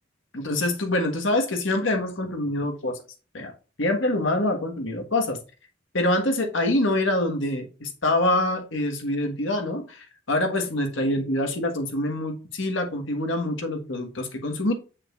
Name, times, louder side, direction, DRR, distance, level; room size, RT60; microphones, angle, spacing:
voice 1, 0.3-3.0 3.3-3.5 3.8-5.4 5.9-14.7, left 1 dB, 70° left, 1.4 m, -25 dB
6.3 x 6.3 x 2.4 m
head